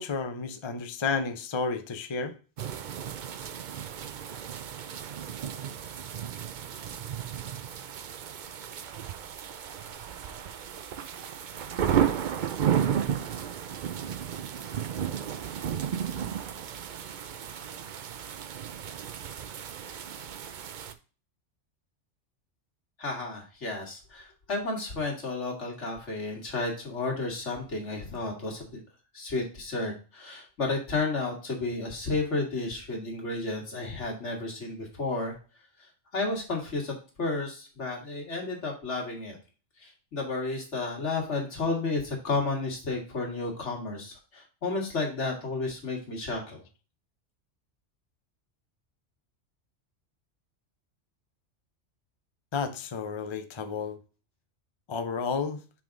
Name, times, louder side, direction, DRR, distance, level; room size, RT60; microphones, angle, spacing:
voice 1, 0.0-2.4 52.5-54.0 54.9-55.6, left 5 dB, 35° left, 8 dB, 0.5 m, -31 dB
sound 1, 2.6-20.9, right 9 dB, 55° right, 0.6 m, -33 dB
voice 2, 23.0-28.8 29.1-35.4 35.8-39.4 39.8-46.6, left 3 dB, 75° left, 0 dB, 2.2 m, -32 dB
6.1 x 3.7 x 5.0 m, 0.36 s
omnidirectional pair, 1.2 m